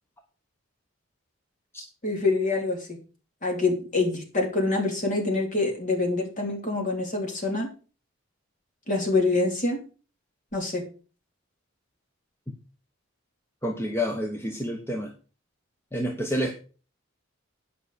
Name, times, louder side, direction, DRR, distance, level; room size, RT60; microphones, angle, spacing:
voice 1, 2.0-2.9 3.4-7.7 8.9-9.8 10.5-10.9, left 3 dB, 40° left, 1 dB, 3.2 m, -25 dB
voice 2, 13.6-15.1 15.9-16.5, equal, 10° left, 2 dB, 1.0 m, -28 dB
9.5 x 5.6 x 6.4 m, 0.37 s
head